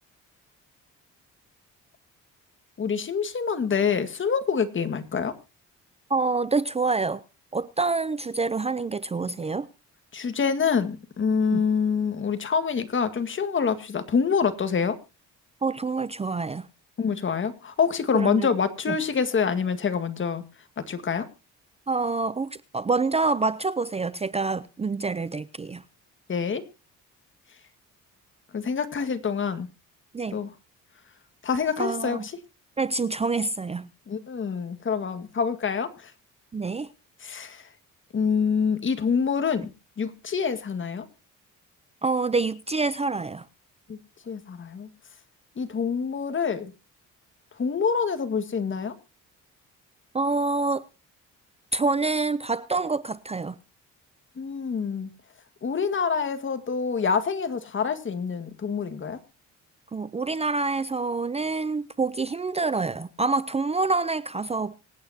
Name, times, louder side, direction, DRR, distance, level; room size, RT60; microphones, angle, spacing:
voice 1, 2.8-5.3 10.1-15.0 17.0-20.4 20.8-21.3 26.3-26.6 28.5-29.7 30.3-30.5 31.4-32.4 34.1-36.1 37.2-37.7 38.1-41.1 43.9-44.0 44.3-44.9 45.6-46.7 47.6-48.9 54.4-55.1 55.6-59.2, left 6 dB, 40° left, 1.9 m, -26 dB
voice 2, 6.1-7.2 7.5-9.7 11.5-11.6 15.6-16.7 18.1-18.5 21.9-25.8 30.1-30.4 31.8-32.2 32.8-33.9 36.5-36.9 42.0-43.4 50.1-50.8 51.7-53.6 59.9-64.7, right 3 dB, 20° right, 0.6 m, -26 dB
25.0 x 8.8 x 2.8 m
cardioid pair, 110°, 32 cm